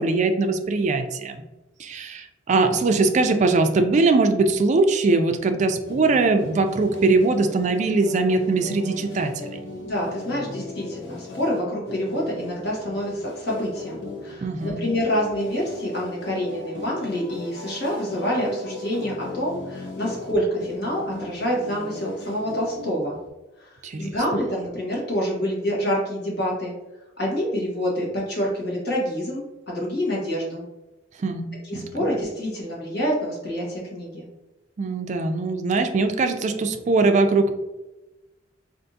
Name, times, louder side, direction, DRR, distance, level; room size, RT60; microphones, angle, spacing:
voice 1, 0.0-1.4 1.8-9.6 14.4-14.8 23.8-24.1 31.2-31.5 31.7-31.8 34.8-37.5, right 3 dB, 40° right, 6 dB, 0.3 m, -21 dB
sound 1, 5.8-23.3, left 2 dB, 80° left, 0.7 m, -38 dB
voice 2, 9.8-23.2 23.6-26.7 27.2-30.6 31.6-34.3, equal, 60° left, -4 dB, 1.2 m, -27 dB
3.5 x 2.5 x 2.6 m, 1.0 s
head